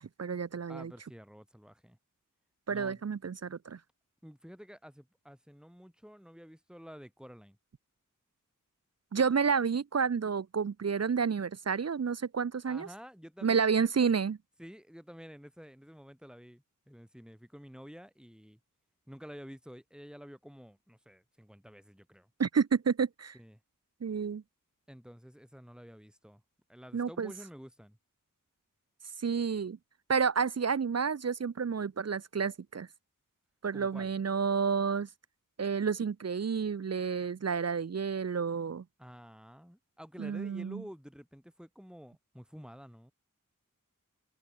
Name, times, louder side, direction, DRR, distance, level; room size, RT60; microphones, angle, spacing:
voice 1, 0.0-0.9 2.7-3.8 9.1-12.9 13.4-14.4 22.4-23.3 24.0-24.4 26.9-27.3 29.2-29.8 30.1-32.9 33.6-35.1 35.6-38.8 40.2-40.8, right 6 dB, 50° right, 0.5 m, -30 dB
voice 2, 0.7-2.0 2.7-3.0 4.2-7.6 12.7-13.9 14.6-18.6 19.1-22.3 23.3-23.6 24.9-26.4 26.7-28.0 33.7-34.1 39.0-43.1, equal, ahead, 7.2 m, -50 dB
wide cardioid pair, 50°, 33 cm